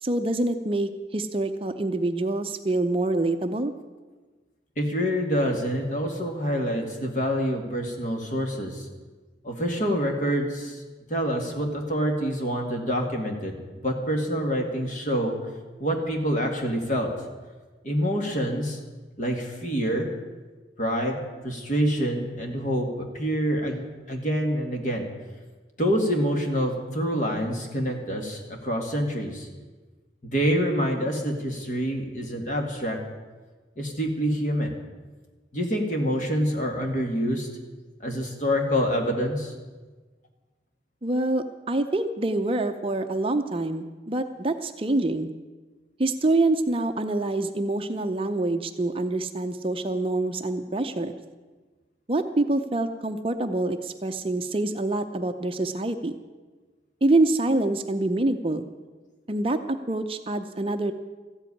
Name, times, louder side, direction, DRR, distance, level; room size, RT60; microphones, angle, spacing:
voice 1, 0.0-3.7 41.0-45.3 46.0-51.1 52.1-56.1 57.0-58.7 59.3-60.9, right 2 dB, 30° right, 7 dB, 0.6 m, -26 dB
voice 2, 4.8-8.9 9.4-10.8 11.1-15.4 15.8-17.1 17.8-18.8 19.2-20.1 20.8-23.8 24.1-25.1 25.8-29.5 30.2-33.0 33.8-34.8 35.5-37.5 38.0-39.5, equal, 45° left, 2 dB, 2.1 m, -26 dB
14.5 x 8.1 x 9.8 m, 1.3 s
head